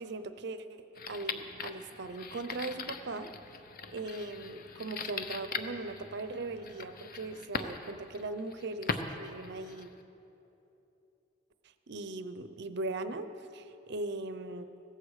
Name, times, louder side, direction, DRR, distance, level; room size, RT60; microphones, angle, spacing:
voice 1, 0.0-3.3 3.9-9.9 11.9-14.7, right 2 dB, 60° right, 11 dB, 0.7 m, -39 dB
sound 1, 0.9-10.0, left 4 dB, 50° left, 0.7 m, -41 dB
16.5 x 14.5 x 4.9 m, 2.9 s
head